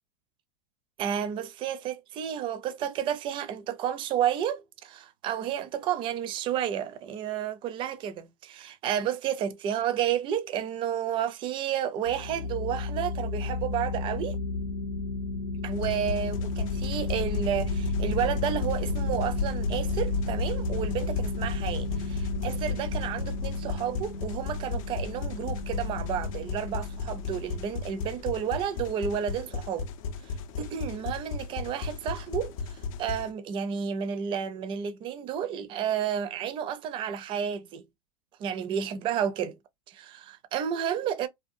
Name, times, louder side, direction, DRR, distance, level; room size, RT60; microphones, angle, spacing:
voice 1, 1.0-14.4 15.6-29.9 30.6-37.8 38.4-39.6 39.9-41.3, right 9 dB, 25° right, 0.4 m, -31 dB
sound 1, 12.1-28.3, left 3 dB, 90° left, 0.8 m, -32 dB
sound 2, 15.7-33.3, left 5 dB, 60° left, 0.5 m, -36 dB
2.6 x 2.2 x 2.5 m
supercardioid pair, 140°, 19 cm